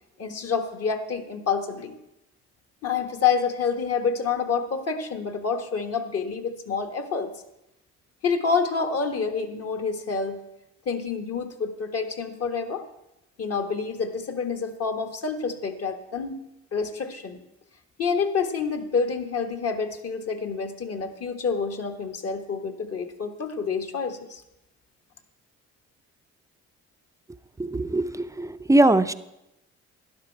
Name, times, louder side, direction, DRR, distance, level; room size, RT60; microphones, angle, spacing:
voice 1, 0.2-2.0 2.8-7.3 8.2-10.4 10.8-12.8 13.4-16.4 16.7-17.4 18.0-24.4, left 5 dB, 55° left, 7 dB, 1.3 m, -28 dB
voice 2, 27.6-29.1, right 2 dB, 10° right, 11 dB, 0.4 m, -21 dB
12.0 x 11.0 x 4.5 m, 0.91 s
cardioid pair, 90°, 30 cm